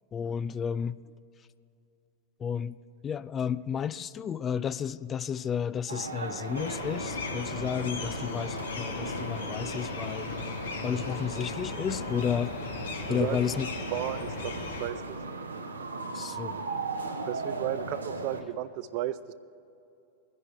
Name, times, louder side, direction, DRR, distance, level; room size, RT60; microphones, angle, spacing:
voice 1, 0.1-1.0 2.4-2.8 3.0-10.3 10.8-12.5 13.1-13.7 16.1-16.6, left 8 dB, 25° left, 16 dB, 0.3 m, -32 dB
sound 1, 5.9-18.4, right 3 dB, 85° right, 1.0 m, -38 dB
sound 2, 6.5-14.9, left 4 dB, 75° left, 1.6 m, -37 dB
voice 2, 13.1-14.5 14.8-15.2 17.3-19.3, right 13 dB, 50° right, 15 dB, 0.5 m, -34 dB
21.0 x 10.5 x 3.3 m, 2.6 s
figure-of-eight pair, 90°, 0 cm